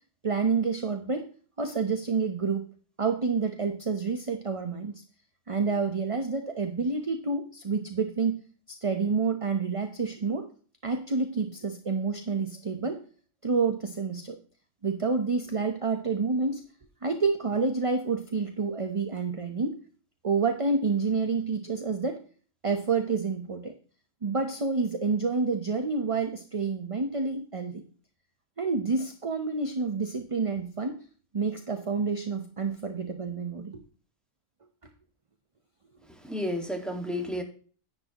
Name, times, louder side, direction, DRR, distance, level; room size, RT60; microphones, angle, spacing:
voice 1, 0.2-1.3 1.6-2.6 3.0-5.0 5.5-8.4 8.7-10.5 10.8-13.0 13.4-14.4 14.8-16.6 17.0-19.8 20.2-22.2 22.6-23.7 24.2-27.8 28.6-31.0 31.3-33.8, right 4 dB, 30° right, 0.9 m, -28 dB
voice 2, 36.1-37.4, left 1 dB, ahead, 1.8 m, -32 dB
10.5 x 9.8 x 3.0 m
omnidirectional pair, 1.3 m